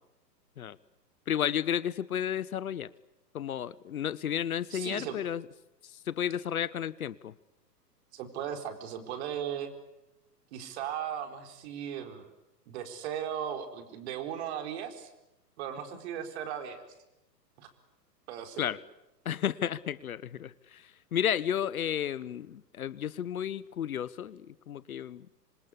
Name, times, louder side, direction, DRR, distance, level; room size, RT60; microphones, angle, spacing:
voice 1, 1.3-2.9 3.3-5.5 5.8-7.3 18.6-18.8 19.2-25.3, left 9 dB, 60° left, 19 dB, 1.1 m, -32 dB
voice 2, 4.7-5.2 8.1-9.7 10.5-12.3 12.7-15.1 15.6-16.8 17.6-17.7 18.3-18.7, right 9 dB, 40° right, 7 dB, 4.4 m, -37 dB
27.0 x 26.0 x 8.5 m, 0.92 s
figure-of-eight pair, 115°, 49 cm